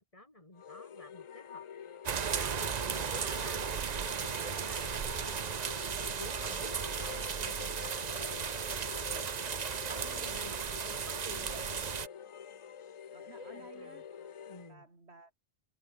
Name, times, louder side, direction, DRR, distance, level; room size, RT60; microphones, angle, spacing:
voice 1, 0.0-8.5 9.9-10.5 10.8-11.9 13.4-14.0 14.5-14.9, left 1 dB, 30° left, 3.5 m, -51 dB
sound 1, 0.5-14.7, left 8 dB, 55° left, 0.3 m, -47 dB
sound 2, 2.0-12.1, right 7 dB, 45° right, 0.8 m, -35 dB
voice 2, 9.9-10.7 11.3-11.9 13.1-15.4, right 2 dB, 75° right, 3.8 m, -56 dB
omnidirectional pair, 1.1 m